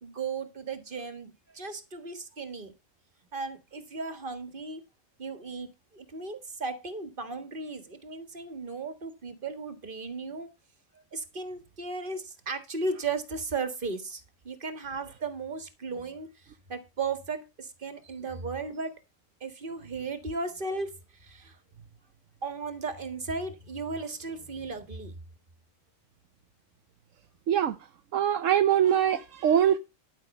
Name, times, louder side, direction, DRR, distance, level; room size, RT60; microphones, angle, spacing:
voice 1, 0.0-2.7 3.3-4.8 5.2-10.5 11.1-16.3 16.7-18.9 19.4-20.9 21.2-21.6 22.4-25.1, right 4 dB, 40° right, 1.8 m, -36 dB
voice 2, 28.1-29.8, right 10 dB, 75° right, 1.1 m, -23 dB
12.0 x 5.9 x 5.3 m
omnidirectional pair, 1.4 m